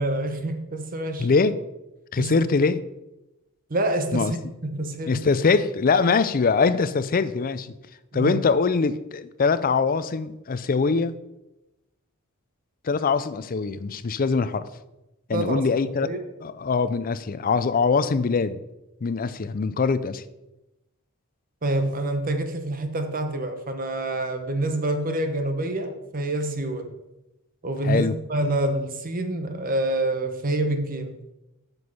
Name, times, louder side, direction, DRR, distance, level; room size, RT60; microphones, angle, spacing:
voice 1, 0.0-1.3 2.2-2.3 3.7-4.4 4.7-5.3 8.1-8.4 15.3-16.2 21.6-27.0 27.6-31.2, right 1 dB, 40° right, 7 dB, 1.0 m, -27 dB
voice 2, 1.2-1.6 2.1-2.8 4.1-4.3 5.1-7.7 8.1-11.1 12.8-14.7 15.3-16.1 16.4-18.6 19.0-20.2 27.8-28.1, left 4 dB, 40° left, 14 dB, 0.4 m, -23 dB
7.9 x 6.2 x 5.5 m, 0.96 s
head